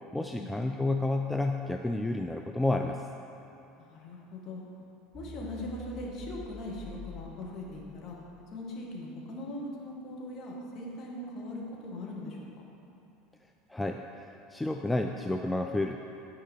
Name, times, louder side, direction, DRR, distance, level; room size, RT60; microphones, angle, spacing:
voice 1, 0.1-3.0 13.7-14.0 14.5-16.0, left 2 dB, 5° left, 3 dB, 0.3 m, -30 dB
voice 2, 3.8-4.6 5.1-8.2 8.5-12.5, left 1 dB, 40° left, -2 dB, 1.4 m, -40 dB
sound 1, 5.1-8.3, equal, 10° right, 0.9 m, -46 dB
9.1 x 4.9 x 4.3 m, 2.9 s
figure-of-eight pair, 70°, 0 cm